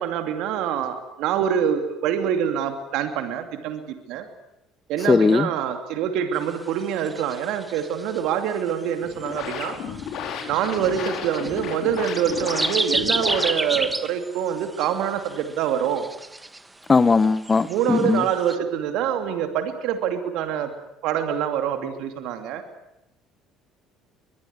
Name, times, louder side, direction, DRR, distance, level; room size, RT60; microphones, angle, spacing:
voice 1, 0.0-3.8 4.1-4.3 4.9-9.8 10.5-16.1 17.6-20.7 21.0-22.6, right 8 dB, 70° right, 7 dB, 2.7 m, -25 dB
voice 2, 5.1-5.5 16.9-18.2, left 4 dB, 30° left, 14 dB, 0.9 m, -18 dB
sound 1, 6.8-8.5 9.1-9.5 10.0-11.6 11.9-18.5, right 2 dB, 15° right, 1.5 m, -31 dB
sound 2, 9.0-14.0, left 7 dB, 65° left, 4.8 m, -33 dB
22.5 x 21.5 x 9.7 m, 0.85 s
hypercardioid pair, 65°, 0 cm